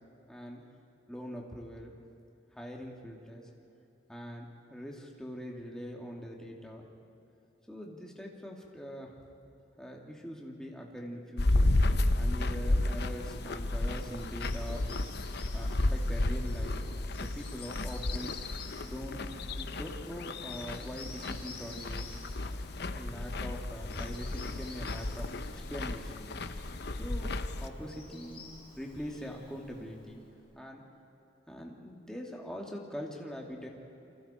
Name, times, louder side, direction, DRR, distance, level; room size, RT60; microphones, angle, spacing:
voice 1, 0.3-0.6 1.1-1.9 2.5-3.5 4.1-6.8 7.7-9.1 9.8-11.7 12.2-14.9 15.5-16.8 17.2-18.3 18.8-19.2 19.6-22.1 22.9-26.3 26.9-28.4 28.8-30.2 30.6-30.8 31.5-33.7, equal, 5° left, -1 dB, 2.6 m, -43 dB
sound 1, 11.4-27.7, left 2 dB, 60° left, 0.9 m, -32 dB
Bird vocalization bird call bird song, 12.5-30.5, left 3 dB, 30° left, 4.8 m, -52 dB
29.5 x 25.5 x 4.5 m, 2.9 s
head